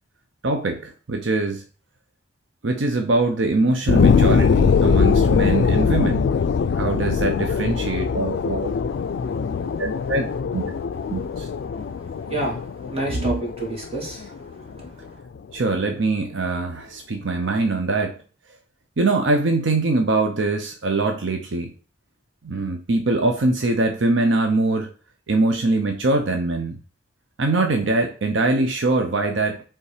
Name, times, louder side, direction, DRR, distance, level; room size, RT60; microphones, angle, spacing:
voice 1, 0.4-1.6 2.6-6.3 6.7-8.7 9.8-10.3 10.5-10.6 11.1-11.5 13.1-13.4 15.5-18.1 19.0-21.7 22.4-24.9 25.3-26.8 27.4-29.6, right 2 dB, 80° right, 4 dB, 0.7 m, -22 dB
sound 1, 3.9-14.9 15.4-15.5, left 6 dB, 65° left, 0.3 m, -21 dB
voice 2, 12.3-14.3 14.8-14.9, right 1 dB, 35° right, -2 dB, 2.5 m, -29 dB
5.4 x 3.5 x 4.9 m, 0.37 s
head